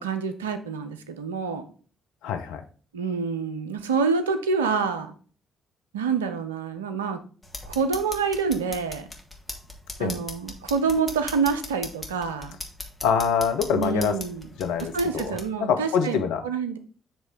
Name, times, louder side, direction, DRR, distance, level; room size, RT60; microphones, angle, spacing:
voice 1, 0.0-1.6 2.9-5.1 5.9-7.2 7.6-9.1 10.0-12.6 13.7-14.5 14.9-16.8, right 5 dB, 75° right, 9 dB, 0.5 m, -27 dB
voice 2, 2.2-2.6 10.0-10.2 13.0-14.2 14.6-16.4, left 7 dB, 65° left, 6 dB, 0.6 m, -25 dB
sound 1, 7.4-15.5, left 2 dB, 15° left, 1.4 m, -39 dB
7.4 x 3.1 x 4.5 m, 0.41 s
figure-of-eight pair, 45°, 0 cm